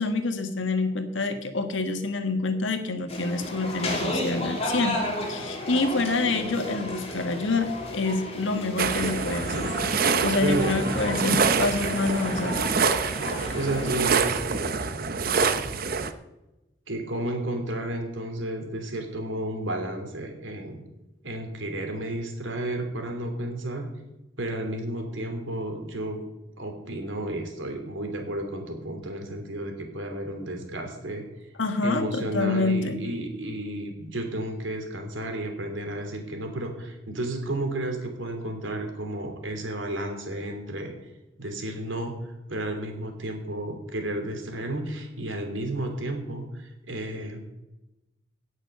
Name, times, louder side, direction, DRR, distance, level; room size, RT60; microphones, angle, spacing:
voice 1, 0.0-5.0 5.3-9.7 10.2-12.6 31.6-33.0, left 3 dB, 80° left, 7 dB, 1.5 m, -27 dB
sound 1, 3.1-14.1, left 1 dB, 30° left, 2.8 m, -33 dB
sound 2, 8.8-16.1, right 5 dB, 50° right, 0.8 m, -26 dB
voice 2, 10.4-10.7 13.2-14.9 15.1-15.6 16.9-20.8 21.2-23.9 24.4-26.2 26.6-31.2 31.8-40.9 41.4-42.1 42.5-47.4, right 1 dB, 80° right, 4 dB, 3.0 m, -32 dB
17.5 x 6.5 x 6.7 m, 0.97 s
head